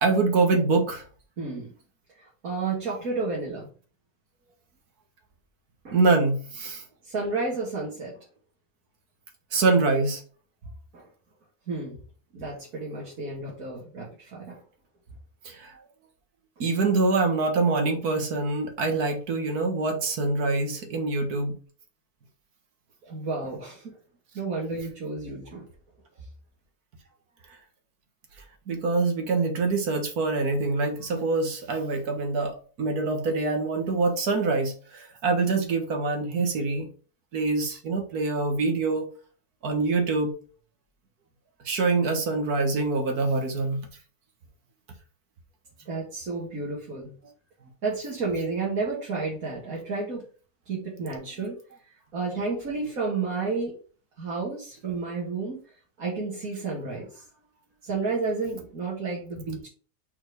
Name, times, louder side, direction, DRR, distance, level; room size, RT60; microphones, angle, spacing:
voice 1, 0.0-1.0 5.9-6.8 9.5-10.2 15.4-15.8 16.6-21.6 28.7-36.9 37.3-39.1 39.6-40.3 41.6-43.8, right 3 dB, 85° right, 4 dB, 2.0 m, -25 dB
voice 2, 1.4-1.7 2.2-3.7 5.8-6.0 7.0-8.2 10.9-11.1 11.7-12.0 12.3-14.6 23.0-24.0 24.3-25.6 45.9-47.1 47.8-50.2 50.7-51.6 52.1-53.8 54.2-55.6 56.0-57.2 57.8-59.7, right 3 dB, 70° right, -4 dB, 2.3 m, -31 dB
5.7 x 4.4 x 4.6 m, 0.40 s
omnidirectional pair, 1.6 m